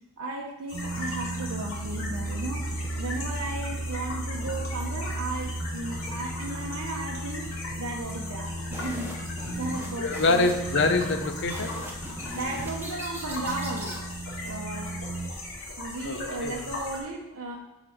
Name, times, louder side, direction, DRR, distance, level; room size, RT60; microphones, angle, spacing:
voice 1, 0.2-7.5 7.8-10.5 10.8-11.1 12.3-13.9 14.4-14.9 15.8-17.6, right 2 dB, 80° right, -1 dB, 0.9 m, -35 dB
sound 1, 0.7-17.0, left 2 dB, 70° left, 2.3 m, -39 dB
sound 2, 0.7-15.3, right 1 dB, 50° right, 0.8 m, -35 dB
sound 3, 8.7-14.0, equal, 10° right, 0.9 m, -41 dB
voice 2, 10.0-11.8 16.0-16.6, left 3 dB, 50° left, 7 dB, 0.6 m, -25 dB
7.5 x 4.1 x 4.8 m, 0.97 s
head